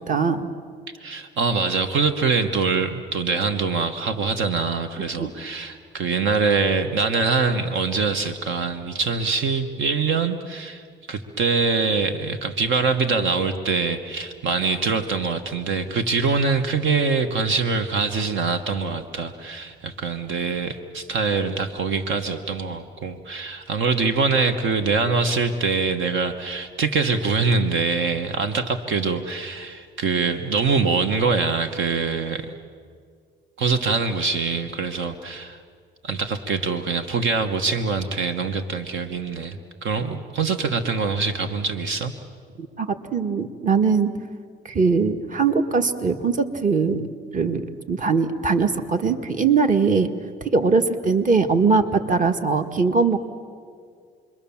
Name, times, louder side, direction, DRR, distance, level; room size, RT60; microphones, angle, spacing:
voice 1, 0.1-0.5 5.2-5.3 42.6-44.1 44.7-47.0 47.3-50.1 50.4-53.3, right 4 dB, 40° right, 7 dB, 1.6 m, -21 dB
voice 2, 1.0-32.5 33.6-35.6 36.0-42.1, right 4 dB, 75° right, 7 dB, 1.4 m, -24 dB
28.5 x 22.5 x 7.2 m, 2.1 s
cardioid pair, 90°, 20 cm